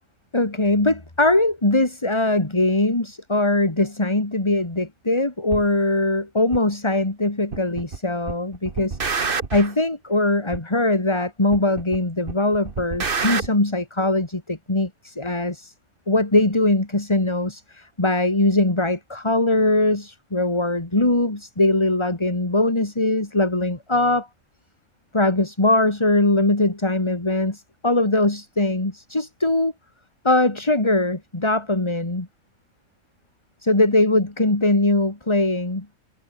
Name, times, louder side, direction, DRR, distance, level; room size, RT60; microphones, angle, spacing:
voice 1, 0.3-9.0 9.5-15.7 16.1-24.3 25.1-29.7 30.2-32.3 33.6-35.9, left 2 dB, 20° left, 2.4 m, -21 dB
sound 1, 5.5-5.6 6.5-6.6 7.5-8.0 8.3-9.7 10.5-10.6 11.5-12.0 12.3-13.5, right 4 dB, 35° right, 1.6 m, -27 dB
omnidirectional pair, 1.6 m